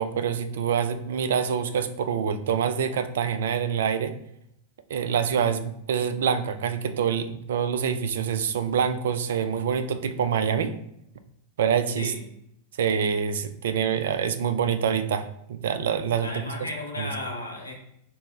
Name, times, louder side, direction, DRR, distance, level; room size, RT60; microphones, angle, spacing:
voice 1, 0.0-4.1 4.9-10.7 11.6-12.1 12.8-16.3 17.0-17.1, right 7 dB, 60° right, 11 dB, 0.3 m, -26 dB
voice 2, 16.2-17.7, left 1 dB, 85° left, 0 dB, 0.7 m, -34 dB
3.7 x 2.0 x 4.0 m, 0.76 s
figure-of-eight pair, 90°, 0 cm